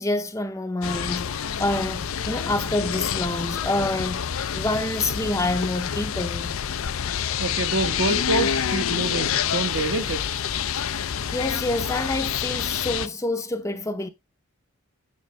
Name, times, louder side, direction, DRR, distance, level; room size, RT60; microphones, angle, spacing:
voice 1, 0.0-4.3 4.5-6.5 11.3-14.1, left 2 dB, 15° left, 0.7 m, -27 dB
sound 1, 0.8-13.1, left 8 dB, 65° left, 0.5 m, -27 dB
voice 2, 7.4-10.3, right 2 dB, 55° right, 1.2 m, -27 dB
9.1 x 5.8 x 3.3 m
head